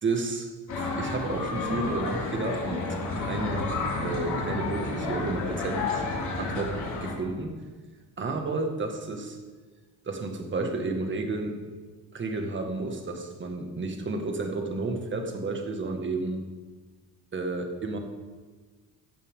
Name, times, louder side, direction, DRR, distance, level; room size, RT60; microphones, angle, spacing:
voice 1, 0.0-3.7 4.0-6.0 6.4-7.6 8.2-9.4 10.1-11.6 12.1-16.5 17.3-18.0, right 3 dB, 30° right, 4 dB, 2.0 m, -31 dB
sound 1, 0.7-7.1, left 3 dB, 50° left, 4.3 m, -31 dB
16.5 x 11.5 x 3.8 m, 1.4 s
cardioid pair, 130°, 38 cm